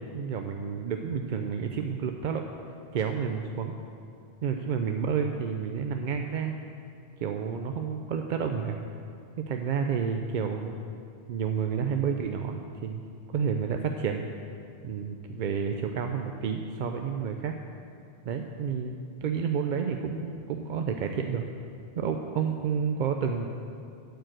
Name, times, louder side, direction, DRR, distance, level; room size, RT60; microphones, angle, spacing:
voice 1, 0.1-2.4 2.9-3.7 4.4-6.5 7.2-8.8 9.4-10.8 11.3-13.0 13.3-14.3 14.8-17.5 18.2-21.4 22.0-23.5, right 6 dB, 60° right, 4 dB, 0.6 m, -30 dB
12.5 x 4.7 x 7.6 m, 2.4 s
omnidirectional pair, 1.1 m